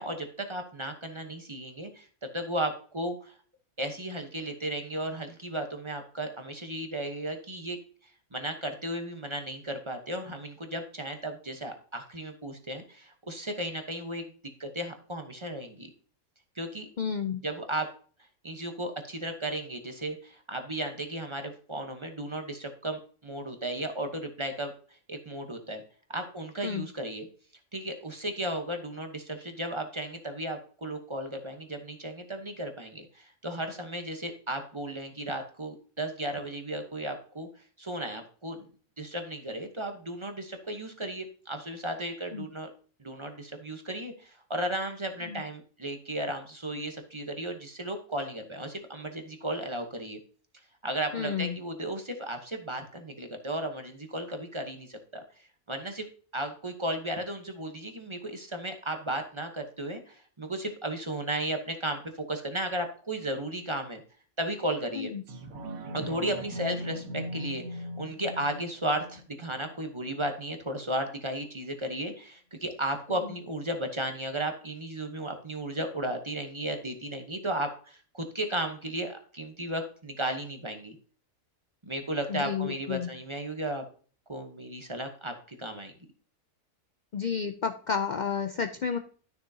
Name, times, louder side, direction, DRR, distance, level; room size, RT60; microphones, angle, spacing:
voice 1, 0.0-2.1 2.3-3.4 3.8-7.8 8.3-14.3 14.6-15.9 16.6-16.9 17.4-17.9 18.4-24.7 25.1-25.8 26.1-27.3 27.7-37.5 37.8-38.7 39.0-42.7 43.0-50.2 50.8-55.2 55.7-56.1 56.3-64.0 64.4-65.1 65.9-81.0 81.8-83.8 84.3-85.9, right 1 dB, 25° right, 5 dB, 0.9 m, -34 dB
voice 2, 17.0-17.4 26.6-26.9 42.3-42.5 45.3-45.4 51.1-51.6 65.0-65.2 82.3-83.1 87.1-89.0, left 6 dB, 75° left, 7 dB, 0.4 m, -31 dB
sound 1, 65.3-70.3 70.7-70.8, equal, 75° right, 1.6 m, -39 dB
12.0 x 6.6 x 2.8 m, 0.41 s
omnidirectional pair, 1.5 m